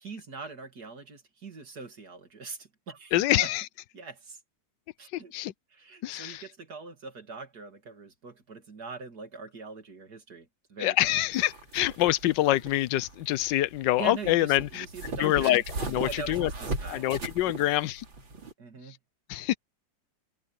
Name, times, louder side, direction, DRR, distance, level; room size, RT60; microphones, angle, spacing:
voice 1, 0.0-3.5 3.9-4.4 5.0-5.3 5.7-11.2 14.0-15.6 16.0-17.0 17.6-17.8 18.6-19.0, right 4 dB, 55° right, 3.1 m, -42 dB
voice 2, 3.1-3.6 5.1-5.5 6.0-6.4 10.8-14.9 15.2-15.6 15.9-16.5 16.9-18.0 19.3-19.6, left 15 dB, 75° left, 1.3 m, -26 dB
sound 1, 11.3-18.5, right 2 dB, 85° right, 4.7 m, -38 dB
omnidirectional pair, 2.0 m